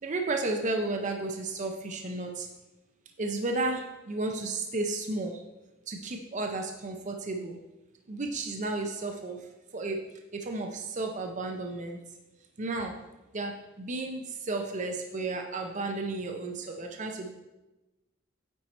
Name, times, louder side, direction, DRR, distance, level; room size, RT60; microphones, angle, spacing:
voice 1, 0.0-2.5 3.2-5.4 5.9-7.6 8.1-9.4 9.7-10.0 10.3-12.0 12.6-13.0 13.3-17.4, right 2 dB, 35° right, 3 dB, 0.5 m, -33 dB
8.9 x 4.6 x 4.1 m, 1.0 s
head